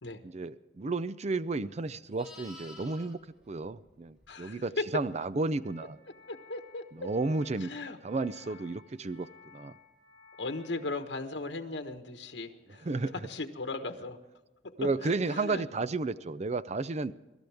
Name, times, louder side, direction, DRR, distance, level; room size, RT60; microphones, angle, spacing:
voice 1, 0.2-3.2 3.5-6.0 6.9-7.7 8.0-9.7 12.8-13.1 14.8-17.1, right 3 dB, 40° right, 16 dB, 0.5 m, -32 dB
Livestock farm animals working animals, 1.7-4.7 9.1-9.3, left 2 dB, 5° right, 2.5 m, -53 dB
voice 2, 4.3-4.8 6.3-7.1 7.6-8.0 10.4-12.9 13.2-14.2 15.0-15.6, left 3 dB, 75° left, 6 dB, 1.3 m, -37 dB
sound 1, 5.6-10.8, left 6 dB, 65° right, 6.9 m, -56 dB
25.0 x 13.5 x 3.5 m, 1.1 s
head